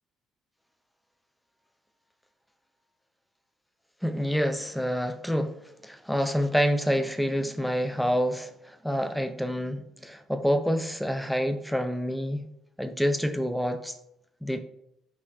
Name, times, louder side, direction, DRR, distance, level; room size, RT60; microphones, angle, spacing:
voice 1, 4.0-5.5 5.8-8.5 8.8-12.4 12.8-13.9 14.4-14.6, equal, ahead, 0.4 m, -27 dB
5.5 x 2.2 x 2.5 m
supercardioid pair, 75°, 0 cm